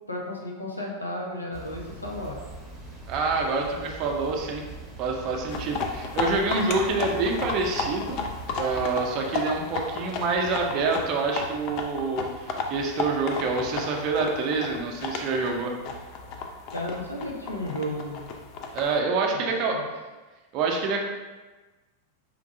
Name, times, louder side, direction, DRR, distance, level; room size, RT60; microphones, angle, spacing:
voice 1, 0.1-2.4 16.7-18.3 19.7-19.8, left 1 dB, 80° left, -1 dB, 0.6 m, -33 dB
sound 1, 1.5-8.9, right 3 dB, 10° right, 0.8 m, -42 dB
voice 2, 3.1-4.6 5.0-8.2 8.6-15.7 18.7-19.8 20.5-21.0, right 3 dB, 40° right, 1 dB, 0.6 m, -27 dB
sound 2, 5.5-19.0, left 4 dB, 40° left, 0.4 m, -34 dB
4.4 x 2.6 x 2.6 m, 1.2 s
figure-of-eight pair, 90°, 0 cm